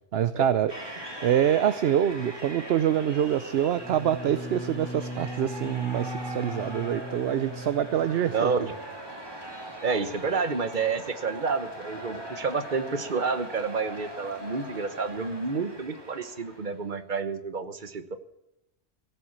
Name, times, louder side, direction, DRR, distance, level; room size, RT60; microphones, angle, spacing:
voice 1, 0.1-0.7 1.2-8.5, right 10 dB, 60° right, 13 dB, 0.8 m, -25 dB
sound 1, 0.7-16.9, right 1 dB, 20° right, 2.3 m, -41 dB
Bowed string instrument, 3.8-8.5, equal, 15° left, 0.4 m, -38 dB
voice 2, 8.3-8.7 9.8-18.2, right 4 dB, 40° right, 10 dB, 1.2 m, -29 dB
16.5 x 7.8 x 7.2 m, 0.86 s
omnidirectional pair, 1.3 m